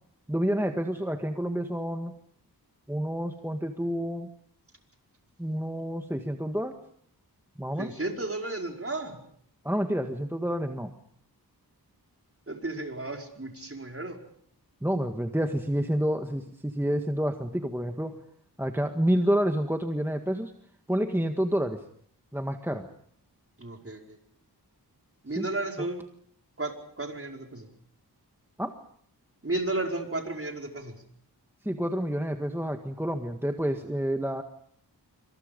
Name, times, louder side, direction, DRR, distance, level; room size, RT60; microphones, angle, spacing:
voice 1, 0.3-2.1 2.9-4.3 5.4-6.8 7.6-7.9 9.6-10.9 14.8-18.2 18.6-20.5 20.9-21.8 22.3-22.9 25.4-25.5 28.6-28.7 31.6-34.4, equal, 5° right, 5 dB, 1.8 m, -29 dB
voice 2, 7.8-9.2 12.5-14.2 23.6-24.2 25.2-26.0 26.6-27.7 29.4-31.0, right 2 dB, 35° right, 3 dB, 5.1 m, -33 dB
27.0 x 26.0 x 5.3 m, 0.64 s
wide cardioid pair, 80°, 39 cm